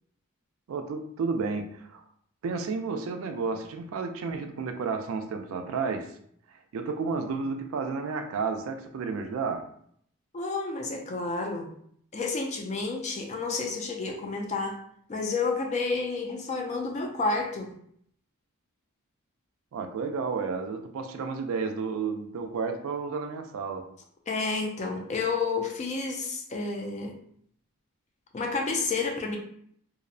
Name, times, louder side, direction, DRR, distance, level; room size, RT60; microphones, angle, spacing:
voice 1, 0.7-2.0 2.4-6.1 6.7-9.7 19.7-23.9, right 4 dB, 65° right, 6 dB, 0.3 m, -31 dB
voice 2, 10.3-11.7 12.1-14.8 15.1-17.7 24.3-27.2 28.3-29.4, left 3 dB, 30° left, 2 dB, 0.3 m, -30 dB
2.6 x 2.0 x 2.5 m, 0.65 s
head